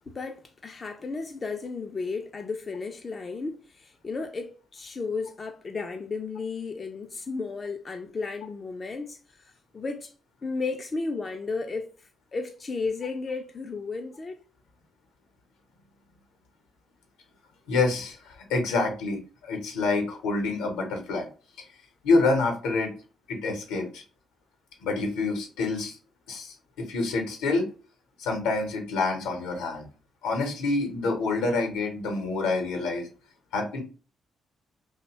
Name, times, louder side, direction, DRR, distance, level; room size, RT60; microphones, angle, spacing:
voice 1, 0.0-10.1 10.4-14.4, left 4 dB, 40° left, 0.3 m, -34 dB
voice 2, 17.7-21.3 22.0-22.9 23.3-24.0 24.8-26.0 26.3-27.7 28.2-29.9 30.2-33.1 33.5-33.8, left 3 dB, 75° left, 0.7 m, -27 dB
2.6 x 2.1 x 2.9 m
hypercardioid pair, 45°, 0 cm